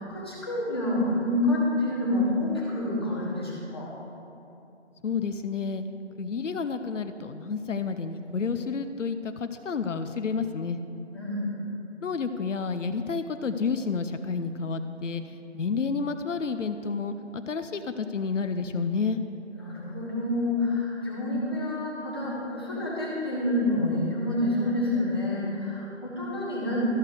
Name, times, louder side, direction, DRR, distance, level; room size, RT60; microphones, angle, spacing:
voice 1, 0.0-3.9 11.1-11.6 19.5-26.9, left 1 dB, 20° left, -7 dB, 1.4 m, -28 dB
voice 2, 5.0-5.8 6.2-10.8 12.0-15.2 15.5-19.2, left 5 dB, 85° left, 9 dB, 0.6 m, -30 dB
12.5 x 6.5 x 4.9 m, 2.8 s
figure-of-eight pair, 180°, 36 cm